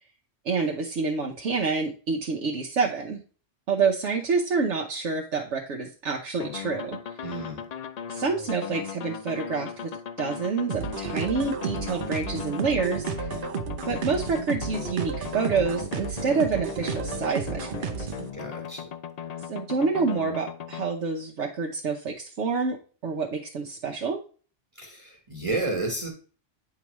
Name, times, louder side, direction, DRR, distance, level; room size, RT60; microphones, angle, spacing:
voice 1, 0.4-3.2 3.7-7.4 8.1-13.3 13.9-18.1 19.5-22.8 23.0-24.2, right 4 dB, 70° right, 0 dB, 1.1 m, -28 dB
sound 1, 6.4-20.8, left 8 dB, 85° left, 0.3 m, -38 dB
voice 2, 7.2-7.6 18.3-18.9 24.8-26.1, right 2 dB, 30° right, 2 dB, 1.2 m, -31 dB
sound 2, 10.7-18.3, right 7 dB, 50° right, 0.8 m, -33 dB
9.4 x 4.9 x 3.0 m, 0.38 s
omnidirectional pair, 1.2 m